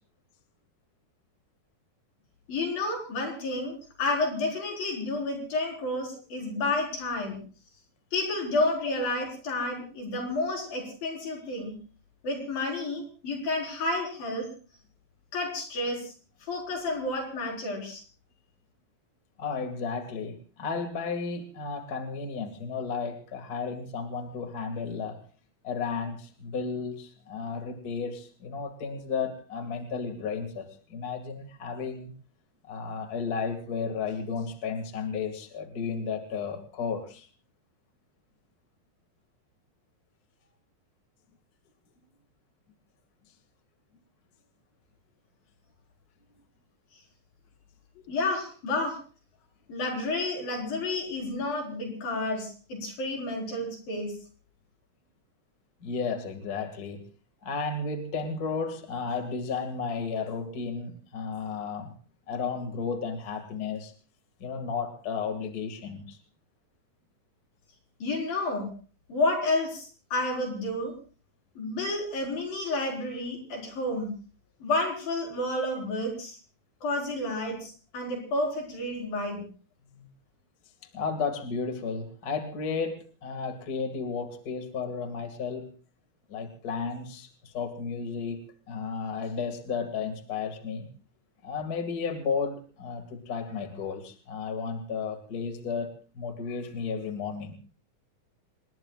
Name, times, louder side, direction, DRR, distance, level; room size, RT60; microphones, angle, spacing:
voice 1, 2.5-7.4 8.1-11.7 12.2-14.5 15.3-16.1 16.5-18.0 48.1-49.0 49.7-54.1 68.0-68.7 69.1-70.9 71.6-74.1 74.6-76.4 76.8-79.4, left 2 dB, 80° left, 0 dB, 6.4 m, -30 dB
voice 2, 19.4-25.2 25.6-32.1 32.7-37.3 55.8-57.0 57.4-61.9 62.3-63.9 64.4-66.2 80.0-80.1 80.9-85.7 86.3-90.9 91.4-97.6, left 5 dB, 30° left, 5 dB, 2.1 m, -33 dB
28.0 x 20.0 x 2.4 m, 0.39 s
omnidirectional pair, 4.1 m